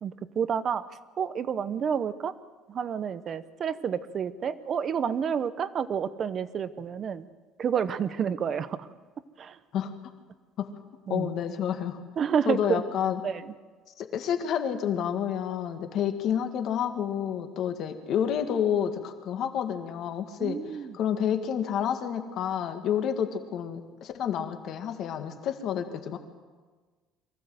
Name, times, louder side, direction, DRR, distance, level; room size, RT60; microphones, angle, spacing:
voice 1, 0.0-0.9 1.2-2.4 2.7-7.3 7.6-8.9 9.4-9.6 11.1-11.3 12.2-12.9 13.2-13.5 20.4-21.0, right 7 dB, 30° right, 15 dB, 0.8 m, -29 dB
voice 2, 11.1-12.0 12.5-13.2 14.0-20.6 20.9-26.2, left 9 dB, 45° left, 7 dB, 1.8 m, -29 dB
23.5 x 15.5 x 7.8 m, 1.4 s
cardioid pair, 165°, 0 cm